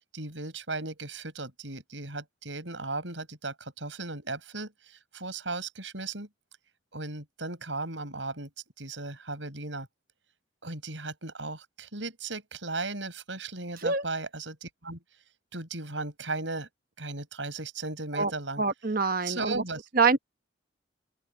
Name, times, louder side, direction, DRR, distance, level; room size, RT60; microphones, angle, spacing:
voice 1, 0.1-6.3 6.9-8.5 8.8-9.9 10.6-15.0 15.5-16.7 17.0-18.6 19.2-20.2, right 3 dB, 75° right, 7.6 m, -36 dB
voice 2, 18.6-19.6 20.0-20.2, right 4 dB, 50° right, 1.2 m, -25 dB
open air
head